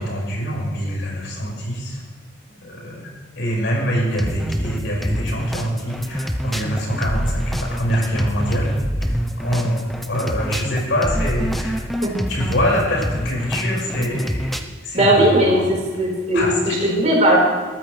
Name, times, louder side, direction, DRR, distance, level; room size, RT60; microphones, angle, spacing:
voice 1, 0.0-2.0 2.6-11.8 12.3-14.6 14.8-15.7 16.3-16.9, equal, 85° left, -3 dB, 5.5 m, -25 dB
sound 1, 4.1-14.6, equal, ahead, 0.7 m, -25 dB
voice 2, 14.9-17.4, right 1 dB, 40° right, -3 dB, 4.6 m, -17 dB
21.0 x 13.5 x 3.3 m, 1.5 s
head